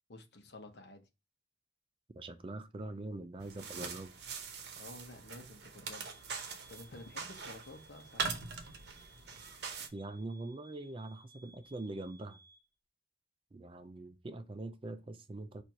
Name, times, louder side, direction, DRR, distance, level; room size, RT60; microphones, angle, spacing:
voice 1, 0.1-1.1 4.7-6.1 6.7-8.3, left 2 dB, 65° left, 0.9 m, -51 dB
voice 2, 2.1-4.1 9.9-12.4 13.5-15.6, right 2 dB, 30° right, 0.4 m, -43 dB
sound 1, 3.4-9.9, right 5 dB, 65° right, 0.8 m, -42 dB
sound 2, 5.9-12.7, right 2 dB, 10° left, 1.9 m, -62 dB
4.4 x 2.6 x 4.6 m
head